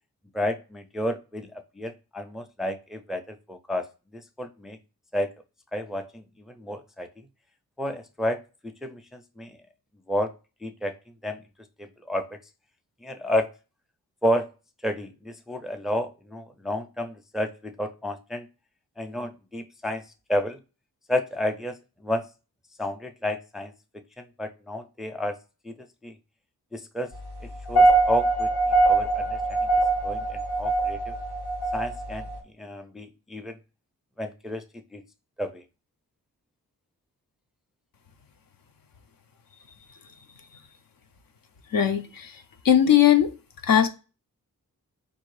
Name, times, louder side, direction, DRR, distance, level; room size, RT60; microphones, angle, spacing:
voice 1, 0.3-3.9 4.4-4.8 5.1-5.3 5.7-7.1 7.8-8.4 8.8-9.6 10.1-10.3 10.6-10.9 11.2-11.4 11.8-12.4 13.0-13.5 14.2-14.5 14.8-18.5 19.0-20.0 20.3-20.6 21.1-21.8 22.0-22.3 22.8-23.7 24.2-25.4 25.6-25.7 26.0-26.1 26.7-27.1 27.7-28.5 28.8-29.6 30.0-31.2 31.7-32.3 32.6-33.6 34.2-34.6 34.9-35.0 35.4-35.6, left 1 dB, ahead, 0.4 m, -31 dB
sound 1, 27.5-32.4, right 2 dB, 90° left, 0.9 m, -23 dB
voice 2, 41.7-42.3 42.6-43.3 43.6-43.9, left 10 dB, 60° left, 0.6 m, -19 dB
3.4 x 2.6 x 3.2 m
cardioid pair, 40°, 38 cm